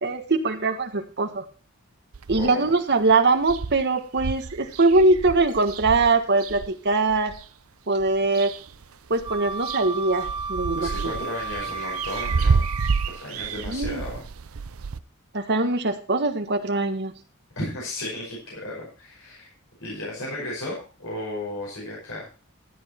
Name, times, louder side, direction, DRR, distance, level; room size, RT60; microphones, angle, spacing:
voice 1, 0.0-1.4 2.3-7.4 7.9-8.5 9.1-11.2 13.6-14.0 15.3-17.1, right 3 dB, 50° right, 7 dB, 1.4 m, -22 dB
sound 1, 2.1-2.7 3.1-3.2 3.4-7.5 8.0-8.8 9.1-15.0, right 5 dB, 70° right, 0.6 m, -30 dB
voice 2, 2.4-2.7 10.8-12.7 13.1-14.3 17.6-19.5 19.8-22.3, left 1 dB, 65° left, -4 dB, 5.4 m, -34 dB
Wind instrument woodwind instrument, 9.2-13.3, right 4 dB, 20° right, 0.9 m, -33 dB
12.5 x 8.8 x 4.4 m, 0.35 s
head